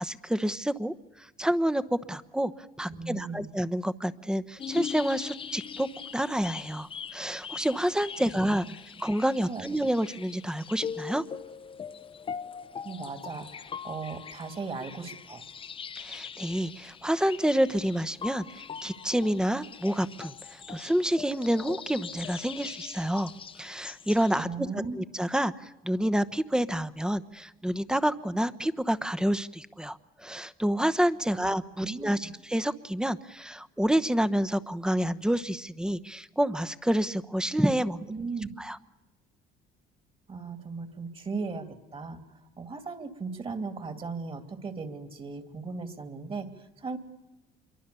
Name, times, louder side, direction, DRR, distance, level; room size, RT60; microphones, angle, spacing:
voice 1, 0.0-2.5 2.8-5.9 6.1-8.7 9.0-11.2 15.9-23.3 23.6-38.0 38.6-38.8, equal, 5° right, 14 dB, 1.0 m, -28 dB
voice 2, 2.9-3.5 8.2-8.7 9.5-9.6 12.8-15.4 24.4-25.0 31.3-31.5 31.8-32.3 38.1-38.5 40.3-47.0, right 4 dB, 35° right, 8 dB, 2.7 m, -37 dB
sound 1, 4.6-24.4, left 7 dB, 30° left, 0.8 m, -41 dB
26.5 x 23.0 x 6.9 m, 1.0 s
cardioid pair, 110°, 17 cm